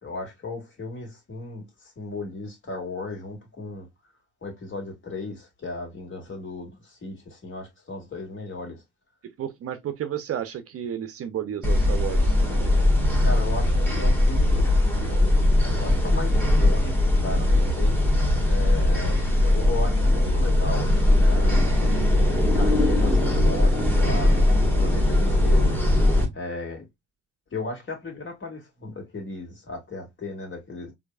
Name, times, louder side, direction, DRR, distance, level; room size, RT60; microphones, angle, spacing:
voice 1, 0.0-3.9 4.4-8.8 13.2-14.7 15.1-15.3 15.7-18.0 18.4-21.6 22.5-25.8 26.3-26.9 27.5-30.9, left 3 dB, 35° left, 2.2 m, -36 dB
voice 2, 9.4-12.3, right 10 dB, 45° right, 0.7 m, -32 dB
sound 1, 11.6-26.3, left 1 dB, 5° left, 1.6 m, -20 dB
4.5 x 2.9 x 2.4 m
hypercardioid pair, 60°, 33 cm